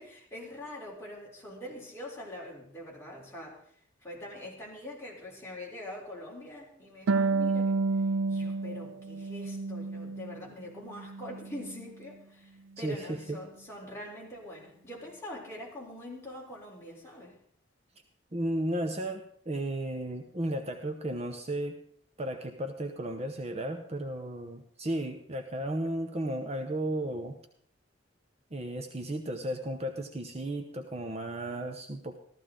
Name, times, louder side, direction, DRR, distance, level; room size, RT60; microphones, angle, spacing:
voice 1, 0.0-3.6 4.0-7.8 8.3-17.4, left 1 dB, 15° left, -4 dB, 3.7 m, -44 dB
Harp, 7.1-10.5 10.8-11.9, right 3 dB, 85° right, 0.4 m, -30 dB
voice 2, 12.8-13.4 18.3-21.8 22.2-27.4 28.5-32.2, right 1 dB, 35° right, 5 dB, 0.9 m, -34 dB
14.5 x 14.0 x 3.8 m, 0.62 s
head